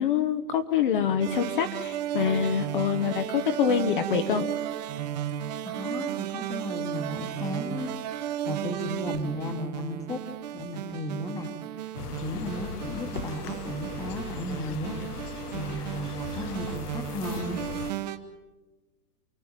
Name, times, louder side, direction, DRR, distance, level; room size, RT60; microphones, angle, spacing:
voice 1, 0.0-4.4, left 8 dB, 35° left, 7 dB, 1.1 m, -25 dB
sound 1, 1.2-18.2, right 11 dB, 30° right, 1.2 m, -34 dB
voice 2, 5.6-7.9 8.4-10.2 10.5-11.5 12.2-15.0 15.5-17.6, left 1 dB, 5° left, 5 dB, 1.4 m, -34 dB
sound 2, 12.0-17.9, left 6 dB, 90° left, 1.6 m, -38 dB
29.0 x 20.0 x 9.0 m, 1.2 s
hypercardioid pair, 175°, 45 cm